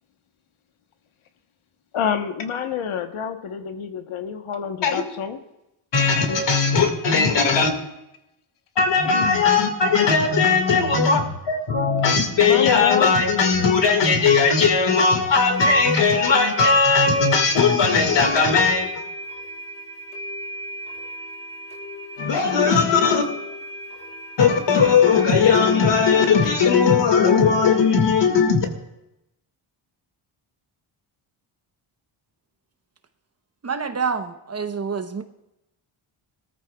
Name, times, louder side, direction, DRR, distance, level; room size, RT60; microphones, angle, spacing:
voice 1, 1.9-5.4 6.3-6.4 9.0-9.4 12.4-13.1, left 8 dB, 75° left, 6 dB, 1.2 m, -27 dB
voice 2, 5.9-7.7 8.8-19.0 22.2-23.2 24.4-28.7, left 5 dB, 60° left, 5 dB, 2.1 m, -18 dB
sound 1, 14.5-14.6 15.5-28.0, right 1 dB, 25° left, 5.4 m, -37 dB
voice 3, 33.6-35.2, right 5 dB, 30° right, 7 dB, 0.8 m, -27 dB
21.5 x 14.0 x 2.3 m, 0.90 s
wide cardioid pair, 140°, 50 cm